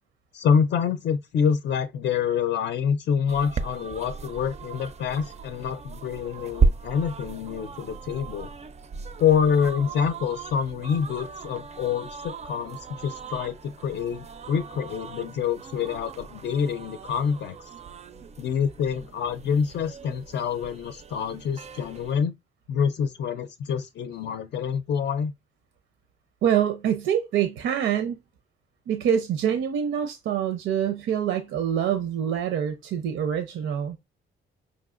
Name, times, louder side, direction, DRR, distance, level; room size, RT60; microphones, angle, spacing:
voice 1, 0.3-8.5 9.2-17.7 18.4-22.3 22.7-25.3, left 7 dB, 60° left, 0.5 m, -26 dB
sound 1, 3.3-22.1, right 4 dB, 35° right, 0.4 m, -34 dB
voice 2, 26.4-28.2 28.9-34.0, right 9 dB, 80° right, 0.6 m, -25 dB
5.4 x 2.7 x 2.5 m
cardioid pair, 90°, 20 cm